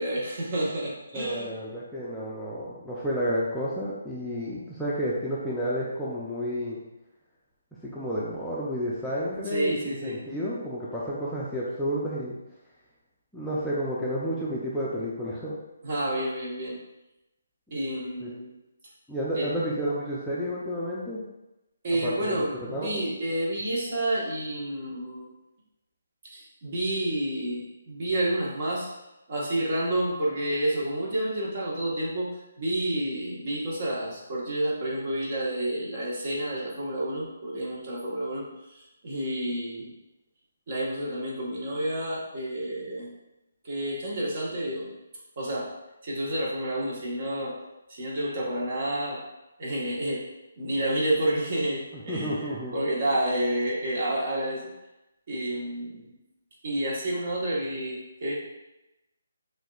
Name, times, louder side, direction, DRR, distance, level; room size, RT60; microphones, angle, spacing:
voice 1, 0.0-1.5 9.5-10.2 15.8-16.8 17.7-18.5 19.3-19.5 21.8-25.3 26.3-28.9 29.3-32.3 32.6-38.4 39.0-39.9 40.7-43.1 43.6-44.9 45.4-45.7 46.0-47.6 47.9-49.2 49.6-50.2 50.6-54.7 55.3-56.1 56.6-58.3, right 1 dB, 45° right, -5 dB, 1.4 m, -29 dB
voice 2, 1.1-6.8 7.8-12.4 13.3-15.6 18.2-18.3 19.1-21.3 21.9-23.1 51.9-52.7, equal, ahead, -10 dB, 0.6 m, -31 dB
6.0 x 2.7 x 2.4 m, 0.95 s
hypercardioid pair, 155°, 0 cm